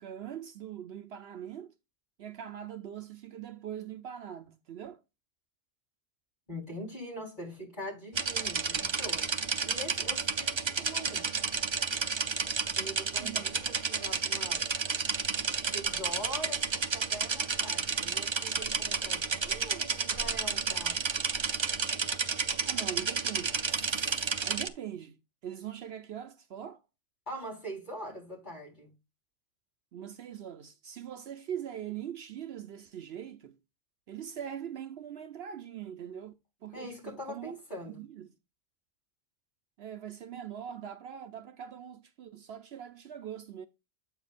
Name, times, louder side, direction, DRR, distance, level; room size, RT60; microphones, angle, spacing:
voice 1, 0.0-1.7 2.2-5.0 13.2-13.6 22.6-25.2 25.4-26.8 29.9-33.6 34.1-36.3 36.6-37.5 37.9-38.3 39.8-43.7, right 9 dB, 65° right, 0.8 m, -42 dB
voice 2, 6.5-11.3 12.6-14.6 15.7-21.0 27.3-28.9 36.7-38.0, equal, 40° left, 4.2 m, -43 dB
sound 1, 8.1-24.7, right 5 dB, 40° right, 0.4 m, -31 dB
8.2 x 6.8 x 2.4 m
omnidirectional pair, 1.2 m